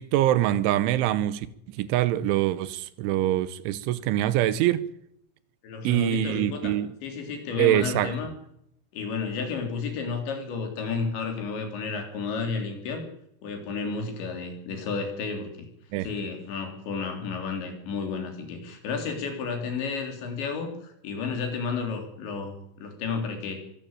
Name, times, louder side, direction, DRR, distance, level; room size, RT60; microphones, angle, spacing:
voice 1, 0.0-4.8 5.8-6.9 7.6-8.1 15.9-16.1, right 13 dB, 85° right, 3.4 m, -24 dB
voice 2, 5.6-6.8 7.0-8.3 8.9-13.0 13.4-15.7 16.0-23.6, left 4 dB, 70° left, 5.7 m, -32 dB
23.5 x 12.5 x 8.9 m
omnidirectional pair, 5.4 m